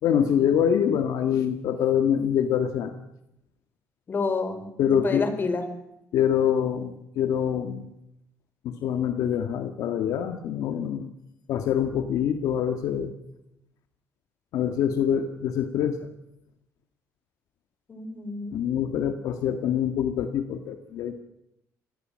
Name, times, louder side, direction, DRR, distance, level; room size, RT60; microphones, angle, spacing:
voice 1, 0.0-2.9 4.8-5.2 6.1-7.9 8.6-11.1 11.5-13.1 14.5-16.0 18.5-21.2, left 9 dB, 70° left, 7 dB, 1.8 m, -25 dB
voice 2, 4.1-5.6 17.9-18.6, left 4 dB, 35° left, 9 dB, 4.6 m, -29 dB
26.5 x 20.0 x 7.6 m, 0.85 s
cardioid pair, 115°, 6 cm